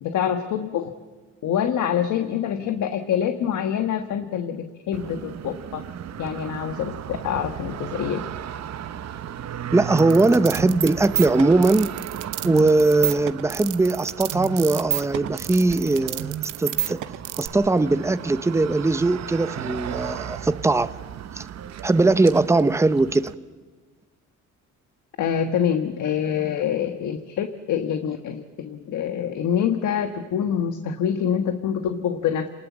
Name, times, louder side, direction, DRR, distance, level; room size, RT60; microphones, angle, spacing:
voice 1, 0.0-0.9 1.4-5.8 6.2-8.2 25.2-32.5, left 8 dB, 75° left, 1.4 m, -25 dB
sound 1, 4.9-23.4, right 10 dB, 60° right, 0.9 m, -36 dB
voice 2, 9.7-11.9 12.4-16.3 16.6-17.0 17.4-20.9 21.3-21.5 21.8-23.3, right 2 dB, 10° right, 0.8 m, -20 dB
sound 2, 10.0-17.5, right 13 dB, 90° right, 1.0 m, -29 dB
28.0 x 19.5 x 7.3 m
cardioid pair, 90°, 30 cm